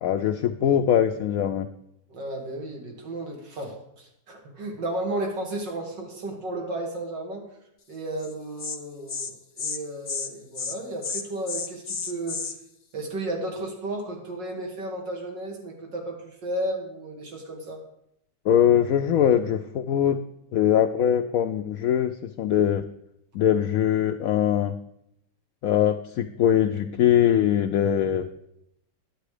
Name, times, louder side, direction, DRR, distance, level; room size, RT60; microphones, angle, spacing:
voice 1, 0.0-1.7 18.4-20.2 20.5-22.9 23.3-24.8 25.6-28.3, left 10 dB, 70° left, 7 dB, 0.8 m, -22 dB
voice 2, 2.1-7.5 7.9-12.4 12.9-17.8, right 1 dB, 90° right, 1 dB, 2.8 m, -33 dB
Insect, 8.2-8.3 8.6-8.8 9.1-9.3 9.6-9.8 10.0-10.3 10.5-10.8 11.0-12.5, left 5 dB, 40° left, 0.5 m, -31 dB
10.5 x 8.3 x 4.9 m, 0.78 s
omnidirectional pair, 1.9 m